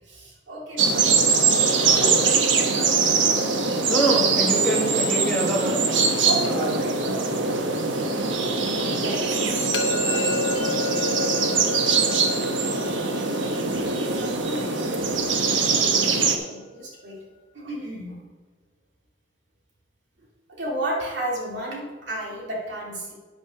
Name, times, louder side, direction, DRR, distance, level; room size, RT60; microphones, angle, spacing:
voice 1, 0.1-1.5 1.8-3.2 6.2-7.7 8.9-9.3 9.7-11.3 13.3-17.2 17.5-18.2 20.5-23.1, right 1 dB, 70° right, -3 dB, 2.6 m, -34 dB
sound 1, 0.8-16.4, right 4 dB, 90° right, 1.1 m, -22 dB
voice 2, 3.9-5.8 6.5-6.7, right 1 dB, 5° left, -4 dB, 1.9 m, -25 dB
sound 2, 9.7-15.6, left 3 dB, 70° left, 1.1 m, -33 dB
10.0 x 6.0 x 5.8 m, 1.3 s
head